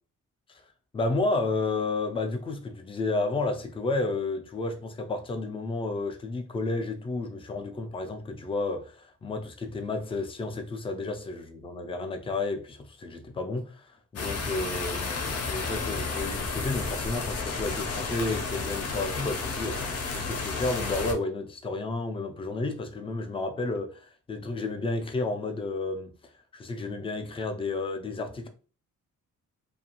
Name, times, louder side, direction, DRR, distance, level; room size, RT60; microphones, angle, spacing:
voice 1, 0.9-26.1 26.5-28.5, left 3 dB, 20° left, 0.3 m, -31 dB
sound 1, 14.2-21.1, left 4 dB, 50° left, 0.6 m, -32 dB
2.5 x 2.3 x 2.8 m
wide cardioid pair, 140°, 32 cm